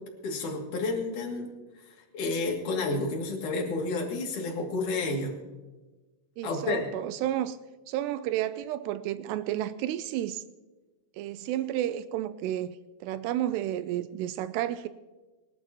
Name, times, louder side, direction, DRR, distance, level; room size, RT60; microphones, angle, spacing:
voice 1, 0.2-1.5 1.8-5.3 6.4-6.9, left 3 dB, 50° left, 3.7 m, -30 dB
voice 2, 6.4-7.6 7.9-10.4 11.1-14.9, right 12 dB, 85° right, 2.5 m, -31 dB
24.0 x 12.0 x 3.0 m
omnidirectional pair, 5.2 m